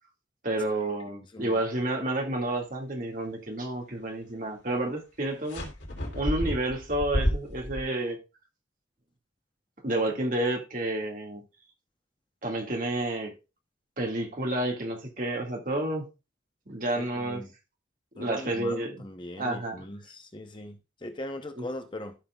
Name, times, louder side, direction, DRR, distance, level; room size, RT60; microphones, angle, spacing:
voice 1, 0.4-5.6 6.1-8.2 9.8-11.4 12.4-13.3 14.0-16.1 16.7-17.4 18.1-19.0 19.4-19.8 21.6-21.7, right 1 dB, 45° right, 2.1 m, -30 dB
sound 1, 5.5-7.8, equal, 80° left, 3.2 m, -30 dB
voice 2, 16.9-17.5 18.2-22.2, left 1 dB, 25° left, 0.8 m, -40 dB
14.5 x 5.8 x 2.4 m
head